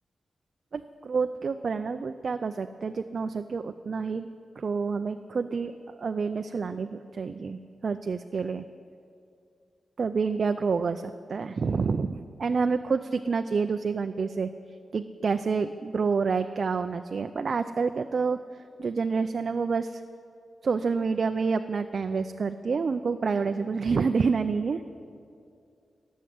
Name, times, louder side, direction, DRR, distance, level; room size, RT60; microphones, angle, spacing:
voice 1, 0.7-4.3 4.6-5.7 6.0-8.6 10.0-14.5 14.9-18.4 18.8-20.0 20.6-24.8, right 5 dB, 55° right, 8 dB, 0.5 m, -28 dB
18.5 x 7.4 x 9.3 m, 2.4 s
wide cardioid pair, 100°, 0 cm